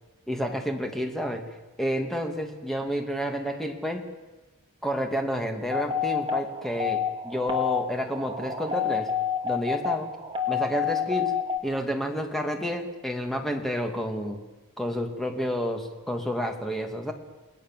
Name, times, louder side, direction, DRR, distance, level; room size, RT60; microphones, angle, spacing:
voice 1, 0.3-1.4 1.8-4.0 4.8-9.1 9.4-10.1 10.5-11.4 11.6-14.4 14.8-17.1, equal, ahead, 3 dB, 2.4 m, -30 dB
sound 1, 5.7-11.6, left 7 dB, 25° right, 2.9 m, -28 dB
29.0 x 19.5 x 7.6 m, 1.1 s
head